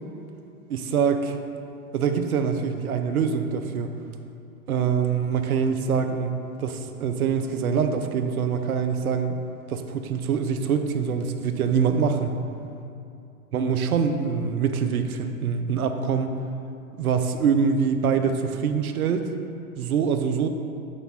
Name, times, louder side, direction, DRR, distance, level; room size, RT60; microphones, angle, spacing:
voice 1, 0.7-1.4 1.9-3.9 4.7-9.4 9.7-12.3 13.5-16.4 17.0-19.3 19.8-20.5, right 6 dB, 70° right, 7 dB, 0.7 m, -24 dB
8.4 x 3.5 x 5.6 m, 2.6 s
figure-of-eight pair, 100°, 44 cm